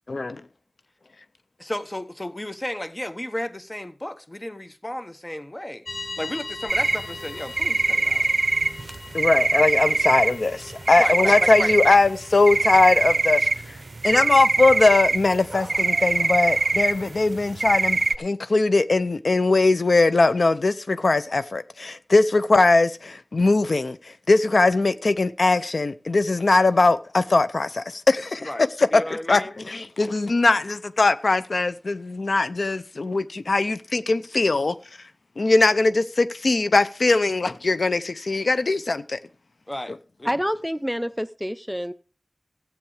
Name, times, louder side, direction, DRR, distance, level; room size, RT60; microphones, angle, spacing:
voice 1, 0.1-0.4 9.1-13.8 14.0-28.5 28.8-29.0 29.3-34.7 35.4-39.2, left 3 dB, 80° left, 0.6 m, -20 dB
voice 2, 1.6-8.3 11.0-11.7 28.4-29.6 39.7-40.3, left 1 dB, 25° left, 1.1 m, -33 dB
sound 1, 5.8-13.5, left 2 dB, 60° left, 1.2 m, -40 dB
sound 2, 6.7-7.0 7.6-10.4 10.7-12.1 12.5-17.0 17.4-18.2, right 3 dB, 80° right, 0.5 m, -22 dB
voice 3, 40.2-41.9, equal, ahead, 0.5 m, -27 dB
14.0 x 8.3 x 4.9 m
wide cardioid pair, 60°, 0 cm